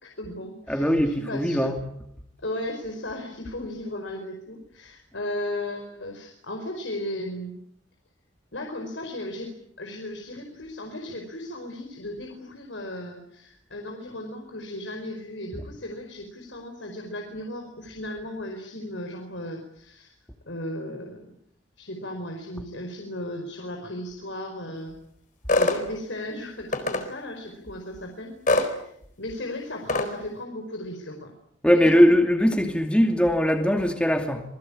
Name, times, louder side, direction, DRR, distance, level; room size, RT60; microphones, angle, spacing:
voice 1, 0.0-1.7 2.4-7.6 8.5-9.5 9.8-20.1 20.4-21.3 21.8-25.0 25.5-28.9 29.2-31.3 31.7-32.1, left 1 dB, 75° left, 3 dB, 5.0 m, -36 dB
voice 2, 0.7-1.8 31.6-34.4, equal, 5° left, 4 dB, 2.6 m, -20 dB
sound 1, 25.5-25.8 26.7-27.0 28.5-28.7 29.9-30.1, left 2 dB, 40° left, 4.1 m, -22 dB
27.5 x 21.0 x 8.7 m, 0.72 s
head